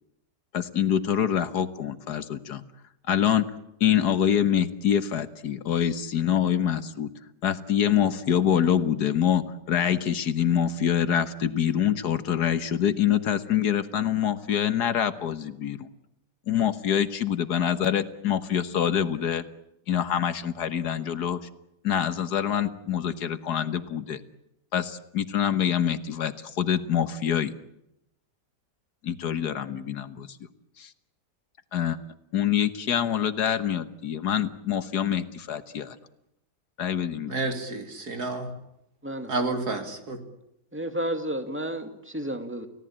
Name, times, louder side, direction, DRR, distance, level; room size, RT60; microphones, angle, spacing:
voice 1, 0.5-2.6 3.1-3.5 3.8-7.1 7.4-15.9 16.5-19.4 19.9-21.4 21.8-24.2 24.7-27.5 29.0-30.3 30.8-30.9 31.7-32.0 32.3-36.0 36.8-37.3, left 9 dB, 75° left, 12 dB, 1.7 m, -25 dB
voice 2, 37.3-38.5 39.3-40.2, right 3 dB, 65° right, 6 dB, 3.5 m, -30 dB
voice 3, 40.7-41.9 42.1-42.7, right 1 dB, 5° right, 7 dB, 2.2 m, -31 dB
30.0 x 17.5 x 8.8 m, 0.82 s
omnidirectional pair, 1.8 m